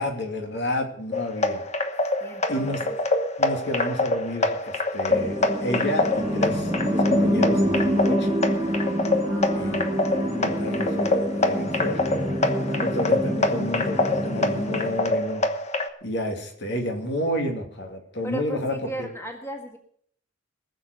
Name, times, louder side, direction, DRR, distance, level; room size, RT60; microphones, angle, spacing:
voice 1, 0.0-1.6 2.5-2.8 3.4-8.3 9.5-15.4 16.0-19.1, left 1 dB, 65° left, 3 dB, 2.6 m, -30 dB
sound 1, 1.1-15.9, left 2 dB, 35° left, 1.1 m, -26 dB
voice 2, 2.2-3.0 9.2-11.1 18.2-19.8, right 1 dB, 15° left, 3 dB, 1.6 m, -37 dB
sound 2, 5.1-15.2, equal, 20° right, 1.5 m, -26 dB
19.5 x 7.3 x 6.6 m, 0.63 s
head